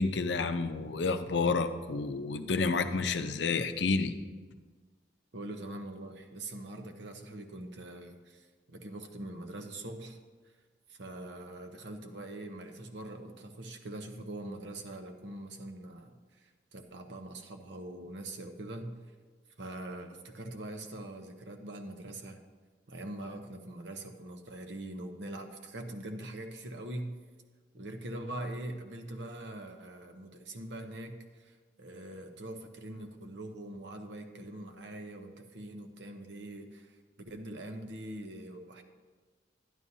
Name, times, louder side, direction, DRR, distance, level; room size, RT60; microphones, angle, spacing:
voice 1, 0.0-4.1, left 4 dB, 65° left, 9 dB, 0.6 m, -30 dB
voice 2, 5.3-10.2 10.9-19.0 19.6-22.4 22.9-27.2 27.7-38.8, right 1 dB, 70° right, 4 dB, 0.9 m, -43 dB
11.0 x 11.0 x 2.8 m, 1.4 s
head